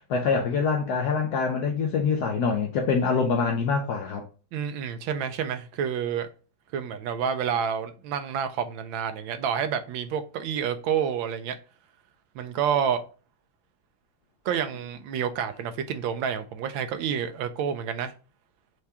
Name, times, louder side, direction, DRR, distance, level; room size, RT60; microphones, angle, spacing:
voice 1, 0.1-4.2, left 5 dB, 70° left, 0.9 m, -25 dB
voice 2, 4.5-6.3 6.7-11.6 12.3-13.0 14.4-18.1, right 8 dB, 75° right, 1.3 m, -29 dB
4.7 x 3.4 x 2.8 m
omnidirectional pair, 2.3 m